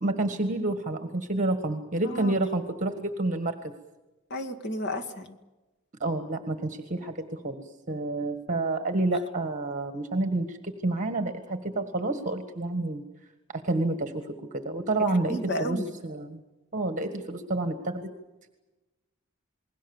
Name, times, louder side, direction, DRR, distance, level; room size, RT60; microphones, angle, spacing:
voice 1, 0.0-3.7 6.0-10.6 10.8-13.0 13.5-16.4 16.7-18.1, right 2 dB, 35° right, 8 dB, 1.6 m, -29 dB
voice 2, 2.0-2.3 4.3-5.3 15.3-15.9, equal, 55° left, 7 dB, 2.2 m, -32 dB
29.0 x 21.0 x 7.2 m, 1.1 s
head